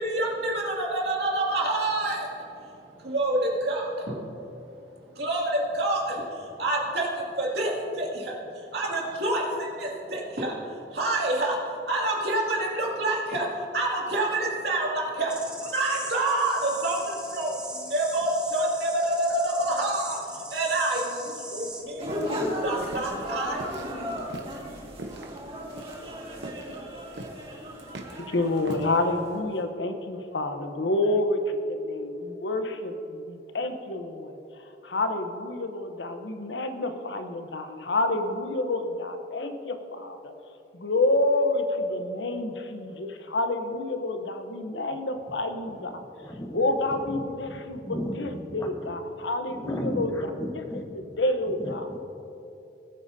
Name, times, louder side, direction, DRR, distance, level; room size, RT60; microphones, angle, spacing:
voice 1, 0.0-4.2 5.0-23.8, right 1 dB, 65° right, -3 dB, 2.5 m, -28 dB
sound 1, 15.3-21.8, right 1 dB, 5° right, 1.1 m, -40 dB
sound 2, 21.6-29.4, right 1 dB, 85° right, 1.0 m, -43 dB
sound 3, 22.0-29.5, equal, 35° right, 1.8 m, -37 dB
voice 2, 28.3-31.4 31.7-34.3 34.8-40.3 40.8-45.9 46.5-50.1 50.7-50.8 51.2-51.9, left 2 dB, 85° left, 6 dB, 0.9 m, -28 dB
voice 3, 46.2-48.9 49.4-50.9 51.4-52.0, equal, 20° left, 3 dB, 0.9 m, -36 dB
19.5 x 8.8 x 2.8 m, 2.8 s
head